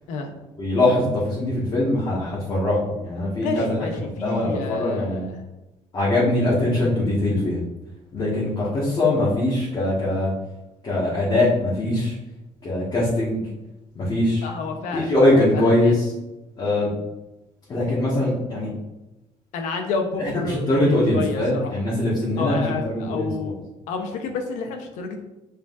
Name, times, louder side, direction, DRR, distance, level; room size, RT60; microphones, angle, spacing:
voice 1, 0.6-3.7 4.2-5.2 5.9-7.6 8.1-10.3 10.8-12.2 12.6-13.4 14.0-14.5 14.9-16.1 16.6-16.9 17.7-18.7 20.2-23.5, left 1 dB, 35° left, -8 dB, 1.9 m, -22 dB
voice 2, 3.4-5.3 6.5-6.6 7.2-7.3 14.4-15.9 19.5-21.7 22.4-23.5 23.9-25.2, left 4 dB, 90° left, 5 dB, 1.0 m, -30 dB
7.5 x 5.1 x 2.7 m, 0.99 s
cardioid pair, 130°, 12 cm